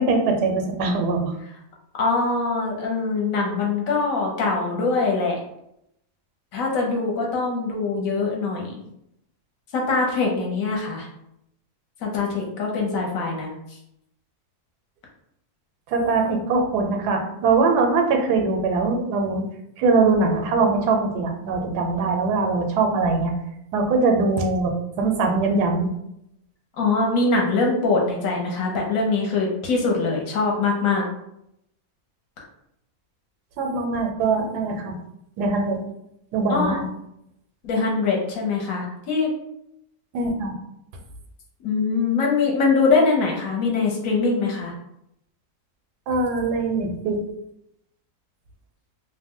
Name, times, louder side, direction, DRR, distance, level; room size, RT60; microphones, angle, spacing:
voice 1, 0.0-1.3 15.9-19.4 19.8-23.3 23.7-25.9 33.6-35.0 35.4-35.8 36.3-36.9 40.1-40.5 46.1-47.2, right 3 dB, 90° right, 3 dB, 1.2 m, -22 dB
voice 2, 2.0-5.4 6.5-8.8 9.7-11.1 12.0-13.5 26.8-31.1 36.5-36.8 37.6-39.3 41.6-44.7, left 4 dB, 65° left, -1 dB, 1.0 m, -23 dB
2.7 x 2.1 x 3.5 m, 0.80 s
omnidirectional pair, 1.7 m